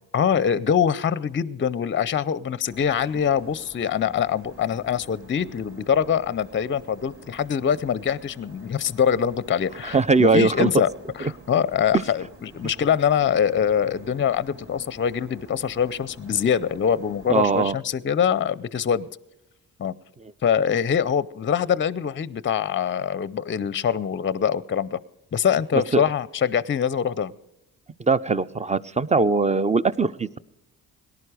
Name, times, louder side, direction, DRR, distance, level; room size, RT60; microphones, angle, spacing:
voice 1, 0.1-10.9 11.2-19.1 19.8-19.9 20.4-25.0 25.3-27.3, left 8 dB, 30° left, 20 dB, 0.5 m, -24 dB
sound 1, 2.7-17.7, equal, 30° right, 4.4 m, -48 dB
voice 2, 9.9-10.7 17.3-17.8 25.9-26.0 28.0-30.4, right 4 dB, 15° right, 16 dB, 0.5 m, -20 dB
18.0 x 11.0 x 4.9 m, 0.88 s
supercardioid pair, 50°, 42 cm